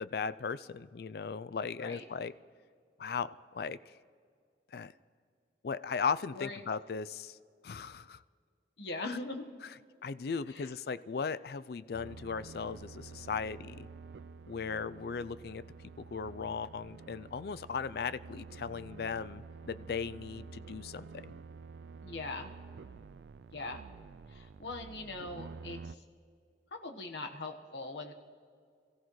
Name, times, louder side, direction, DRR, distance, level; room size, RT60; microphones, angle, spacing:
voice 1, 0.0-2.3 3.0-3.8 4.7-4.9 5.6-7.4 7.6-8.2 9.0-9.2 10.0-13.9 14.5-15.6 16.0-21.1, left 5 dB, 60° left, 15 dB, 0.4 m, -37 dB
voice 2, 8.8-9.4 10.5-10.7 22.0-22.5 23.5-23.8 24.3-25.9 26.8-28.1, left 3 dB, 80° left, 4 dB, 1.3 m, -41 dB
sound 1, 11.9-25.9, right 4 dB, 75° right, 0.4 m, -49 dB
27.0 x 15.0 x 3.1 m, 2.2 s
head